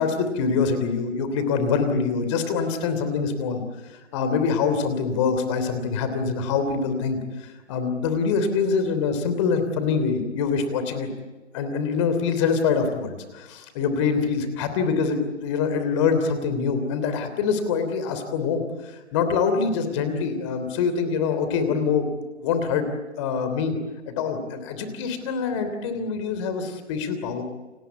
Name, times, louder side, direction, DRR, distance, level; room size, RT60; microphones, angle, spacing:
voice 1, 0.0-3.6 3.9-11.1 11.5-22.1 22.4-22.8 23.2-23.8 24.1-27.4, left 5 dB, 25° left, 9 dB, 3.1 m, -25 dB
29.0 x 19.0 x 8.3 m, 1.2 s
figure-of-eight pair, 150°, 35 cm